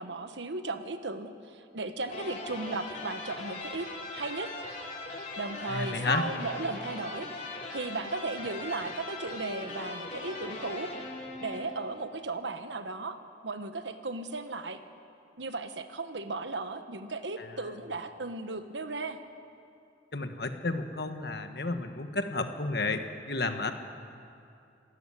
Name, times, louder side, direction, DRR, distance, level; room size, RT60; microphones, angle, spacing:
voice 1, 0.0-4.5 5.4-10.9 11.4-13.2 13.4-14.8 15.4-19.2, right 3 dB, 85° right, 9 dB, 1.3 m, -36 dB
sound 1, 2.1-12.0, left 2 dB, 40° left, 3.1 m, -40 dB
voice 2, 5.7-6.2 17.4-17.5 20.1-23.7, left 3 dB, 60° left, 7 dB, 1.5 m, -31 dB
26.0 x 13.5 x 9.9 m, 2.5 s
head